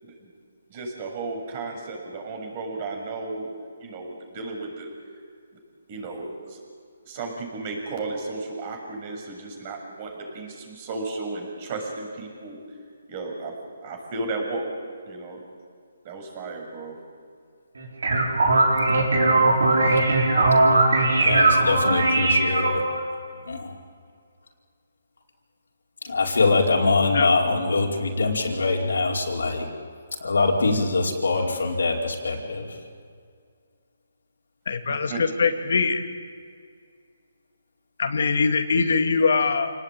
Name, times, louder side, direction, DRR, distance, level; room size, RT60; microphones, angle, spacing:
voice 1, 0.7-3.5 3.8-4.9 5.9-6.6 7.1-12.6 13.1-13.5 13.8-14.7 15.1-15.4 16.0-17.0 35.1-35.2, right 3 dB, 30° right, 1 dB, 6.9 m, -34 dB
sound 1, 17.8-23.0, right 2 dB, 90° right, 6.3 m, -19 dB
voice 2, 21.2-22.8 23.5-23.7 26.0-29.7 30.2-32.7, left 3 dB, 85° left, -1 dB, 5.0 m, -23 dB
voice 3, 27.0-27.3 34.7-36.1 38.0-39.7, left 4 dB, 65° left, 6 dB, 2.4 m, -22 dB
28.5 x 19.0 x 9.1 m, 2.1 s
hypercardioid pair, 160°, 0 cm